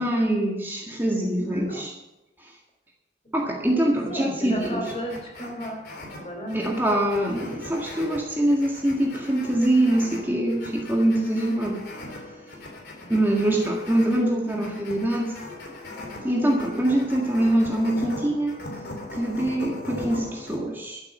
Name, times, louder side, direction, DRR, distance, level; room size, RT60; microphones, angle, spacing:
voice 1, 0.0-1.9 2.4-2.5 3.3-4.8 6.5-11.8 13.1-15.3 16.2-18.5 19.1-21.0, right 1 dB, 10° right, -2 dB, 1.8 m, -24 dB
voice 2, 1.4-1.8 4.1-6.7 13.0-13.2, equal, 35° left, 2 dB, 3.4 m, -33 dB
sound 1, 4.6-20.6, left 1 dB, 70° left, 3.4 m, -40 dB
12.5 x 8.3 x 7.3 m, 0.97 s
head